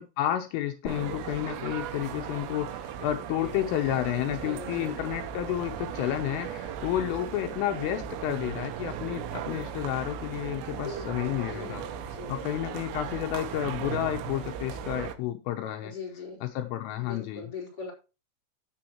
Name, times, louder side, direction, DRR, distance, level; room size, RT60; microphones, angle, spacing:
voice 1, 0.0-11.8 12.3-15.9 16.4-17.5, left 12 dB, 80° left, 4 dB, 3.4 m, -31 dB
sound 1, 0.8-4.4, left 6 dB, 55° left, 1.4 m, -45 dB
sound 2, 0.9-15.2, right 9 dB, 85° right, 3.7 m, -37 dB
voice 2, 2.1-2.5 4.2-4.9 10.6-12.4 15.8-16.4 17.0-17.9, left 4 dB, 20° left, -1 dB, 4.3 m, -42 dB
15.0 x 7.1 x 3.0 m, 0.30 s
omnidirectional pair, 6.0 m